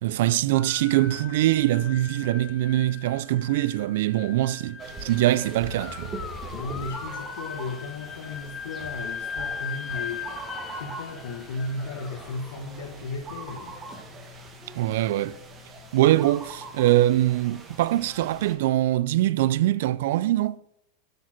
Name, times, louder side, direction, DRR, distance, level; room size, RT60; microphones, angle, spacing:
voice 1, 0.0-6.1 14.7-15.4 15.9-20.6, right 15 dB, 70° right, 0.3 m, -23 dB
sound 1, 0.5-13.6, left 7 dB, 25° left, 0.5 m, -39 dB
sound 2, 4.8-18.6, right 2 dB, 20° right, 1.3 m, -41 dB
voice 2, 6.5-10.3 10.7-13.8, left 3 dB, 85° left, 1.0 m, -35 dB
7.9 x 4.8 x 5.8 m
supercardioid pair, 150°, 0 cm